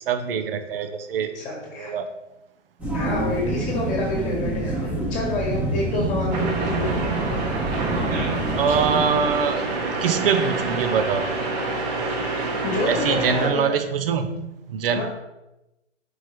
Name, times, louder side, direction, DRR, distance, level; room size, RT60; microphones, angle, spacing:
voice 1, 0.0-1.3 1.8-2.1 8.5-9.7 10.0-11.2 12.9-14.4 14.7-15.0, right 6 dB, 50° right, 8 dB, 0.7 m, -23 dB
voice 2, 1.3-1.9 2.9-6.9 8.7-8.9 12.6-13.7 14.9-15.0, left 1 dB, 20° left, -2 dB, 1.5 m, -28 dB
sound 1, 2.8-9.1, right 1 dB, 5° right, 1.2 m, -27 dB
sound 2, 6.3-13.5, right 3 dB, 35° right, 1.2 m, -27 dB
4.7 x 4.4 x 4.8 m, 0.95 s
figure-of-eight pair, 125°, 37 cm